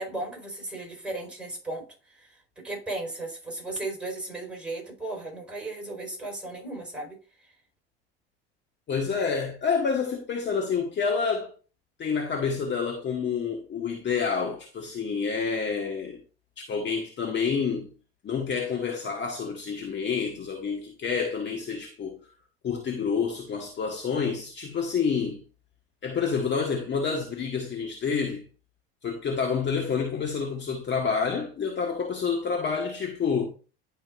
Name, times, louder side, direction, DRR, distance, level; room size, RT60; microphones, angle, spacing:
voice 1, 0.0-7.2, right 2 dB, 5° right, 4.5 m, -36 dB
voice 2, 8.9-11.5 12.0-16.2 16.7-17.9 18.2-22.2 22.6-25.4 26.0-28.4 29.0-33.5, left 5 dB, 35° left, 1.5 m, -28 dB
11.0 x 5.2 x 2.5 m
hypercardioid pair, 70°, 32 cm